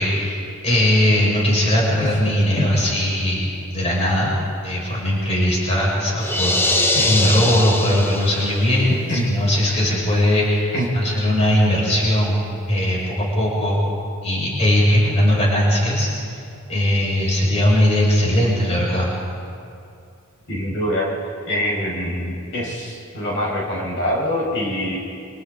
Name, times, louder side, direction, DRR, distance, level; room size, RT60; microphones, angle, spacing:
voice 1, 0.0-4.3 4.6-6.8 7.1-13.9 14.2-16.1 16.7-19.1, left 1 dB, 30° left, -4 dB, 5.9 m, -19 dB
sound 1, 6.2-8.7, left 1 dB, 10° left, 1.0 m, -21 dB
voice 2, 20.5-21.1 21.5-25.0, equal, 60° left, -4 dB, 6.3 m, -24 dB
29.0 x 27.5 x 4.1 m, 2.5 s
head